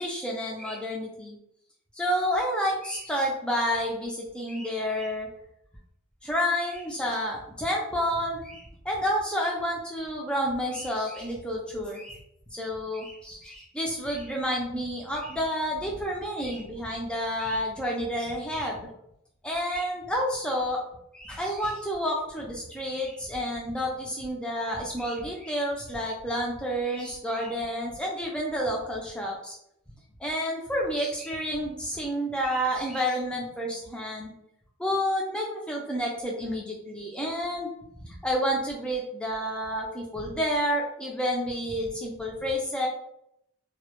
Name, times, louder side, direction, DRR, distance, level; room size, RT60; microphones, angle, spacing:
voice 1, 0.0-1.4 2.0-5.3 6.2-12.2 12.5-18.9 19.4-20.8 21.1-29.5 30.2-34.3 34.8-37.7 38.0-42.9, equal, 5° left, -2 dB, 0.4 m, -30 dB
2.1 x 2.0 x 2.9 m, 0.76 s
head